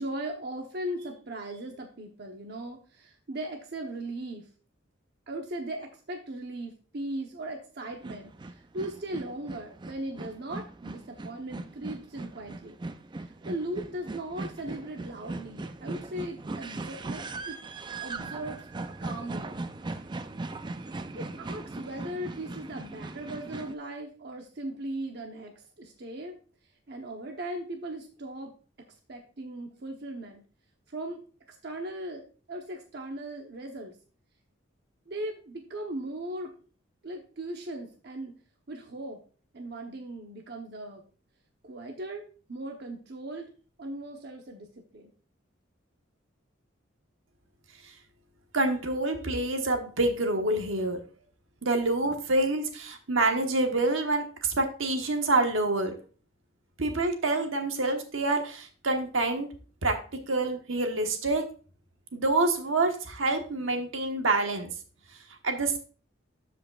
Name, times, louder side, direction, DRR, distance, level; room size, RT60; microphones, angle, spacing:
voice 1, 0.0-4.5 5.3-12.7 13.2-17.6 18.0-18.6 19.0-19.6 21.1-26.4 26.9-28.5 29.1-30.4 30.9-31.2 31.6-33.9 35.1-36.5 37.0-38.3 38.7-39.2 39.5-41.0 41.6-42.2 42.5-43.5 43.8-45.1, right 1 dB, 55° right, 2 dB, 0.9 m, -38 dB
sound 1, 7.9-23.8, right 2 dB, 25° right, 0.4 m, -39 dB
voice 2, 48.5-51.0 51.6-55.9 56.8-59.5 59.8-59.9 60.3-61.4 62.1-64.7 65.4-65.8, right 2 dB, 80° right, 4 dB, 1.2 m, -27 dB
12.5 x 5.2 x 2.4 m, 0.39 s
head